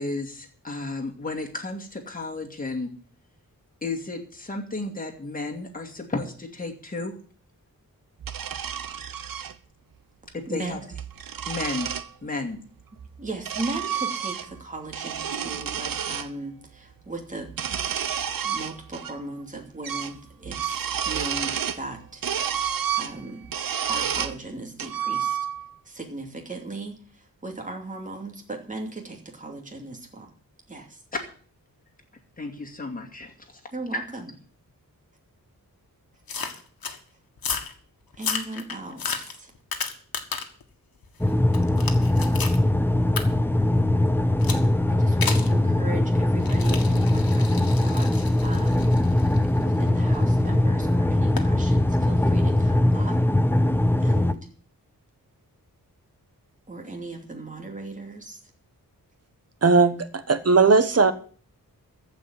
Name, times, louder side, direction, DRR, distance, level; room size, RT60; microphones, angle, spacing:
voice 1, 0.0-2.9 3.8-7.1 10.3-10.8 11.5-11.9 12.2-12.6 31.1-31.2 32.4-33.3 33.9-34.0, left 2 dB, 25° left, 0 dB, 2.4 m, -32 dB
sound 1, 8.2-9.5 10.8-12.1 13.0-14.6 14.9-16.3 17.5-19.1 19.4-19.5 19.8-20.2 20.4-21.9 22.2-24.4 24.8-25.7, right 8 dB, 70° right, 0.9 m, -30 dB
voice 2, 10.5-10.8 13.2-17.5 18.4-22.5 23.0-23.5 23.9-25.4 25.8-30.3 30.7-31.0 33.7-34.3 38.1-39.5 44.9-49.3 49.6-53.5 54.0-54.5 56.7-58.4, right 2 dB, 20° right, 2 dB, 2.7 m, -37 dB
sound 2, 36.3-37.0 37.4-37.7 38.1-40.6 41.0-42.6 43.2-43.3 44.4-44.7 45.2-45.5 46.4-50.4 51.4-51.5, left 5 dB, 80° left, 1.8 m, -33 dB
sound 3, 41.2-54.3, left 1 dB, 5° left, 0.6 m, -21 dB
voice 3, 59.6-61.1, right 4 dB, 45° right, 11 dB, 1.3 m, -18 dB
14.5 x 5.3 x 9.6 m, 0.43 s
wide cardioid pair, 135°, 35 cm